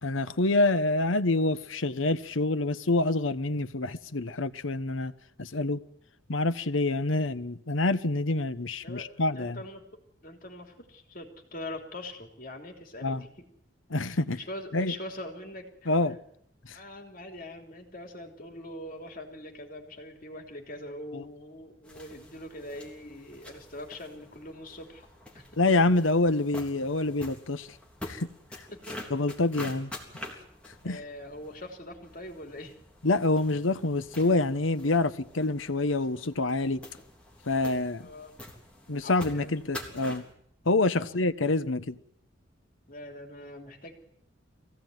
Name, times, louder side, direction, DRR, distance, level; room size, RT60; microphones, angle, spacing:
voice 1, 0.0-5.1 5.4-5.8 6.3-9.6 13.0-13.2 13.9-14.4 14.7-14.9 15.9-16.2 16.6-16.8 21.1-21.2 25.6-27.7 28.1-28.3 29.1-29.9 30.8-31.0 33.0-36.8 37.5-38.1 38.9-40.2 40.6-42.0, left 2 dB, 85° left, 1.1 m, -26 dB
voice 2, 8.8-9.8 10.2-13.4 14.0-15.9 16.7-25.1 25.3-25.5 28.7-29.2 30.8-32.8 38.0-38.4 39.0-39.5 40.9-41.1 42.8-43.9, left 1 dB, 45° left, 3.2 m, -43 dB
sound 1, 21.8-40.3, left 1 dB, 5° left, 3.5 m, -46 dB
23.0 x 16.5 x 9.3 m
head